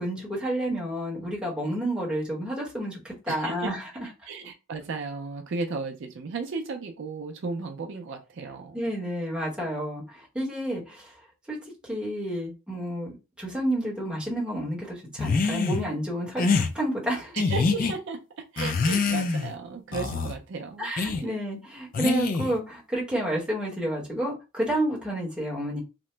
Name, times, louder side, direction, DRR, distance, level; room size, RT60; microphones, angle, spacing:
voice 1, 0.0-3.9 8.7-11.1 11.5-11.6 11.8-17.4 20.8-25.8, right 1 dB, 5° right, -4 dB, 0.9 m, -30 dB
voice 2, 3.3-3.7 4.3-8.8 17.3-21.4, right 4 dB, 55° right, 4 dB, 0.4 m, -35 dB
sound 1, 15.2-15.8 16.4-16.7 17.4-17.9 18.6-19.5 19.9-20.4 21.0-21.2 21.9-22.6, left 4 dB, 40° left, 0.3 m, -25 dB
2.9 x 2.0 x 3.2 m, 0.29 s
head